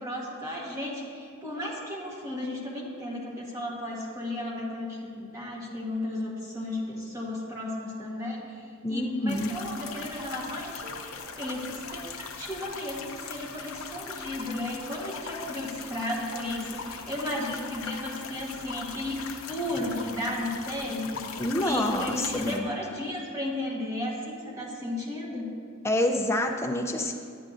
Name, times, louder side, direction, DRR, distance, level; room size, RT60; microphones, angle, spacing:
voice 1, 0.0-25.5, left 1 dB, 15° right, -4 dB, 1.2 m, -34 dB
voice 2, 8.8-9.5 21.4-22.7 25.8-27.1, left 1 dB, 10° left, 2 dB, 0.5 m, -27 dB
sound 1, 9.3-22.6, left 5 dB, 85° left, 0.7 m, -40 dB
9.7 x 9.4 x 2.6 m, 2.3 s
head